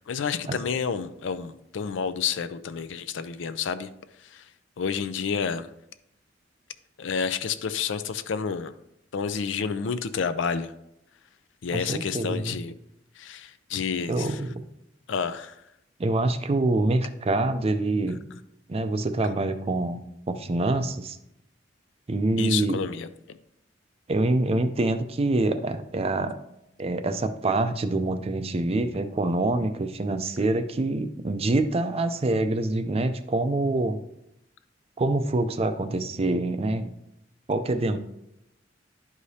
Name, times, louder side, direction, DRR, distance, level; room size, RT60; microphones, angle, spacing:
voice 1, 0.1-3.9 4.2-4.4 4.8-5.7 7.0-8.7 9.1-10.7 11.6-12.7 13.2-14.4 15.1-15.5 22.4-23.4, left 6 dB, 70° left, 12 dB, 0.4 m, -29 dB
voice 2, 11.7-12.6 14.1-14.6 16.0-18.2 18.7-20.0 20.3-21.2 22.1-22.8 24.1-26.3 26.8-34.0 35.0-36.9 37.5-38.0, right 2 dB, 30° right, 9 dB, 0.4 m, -25 dB
11.0 x 4.9 x 2.7 m, 0.82 s
head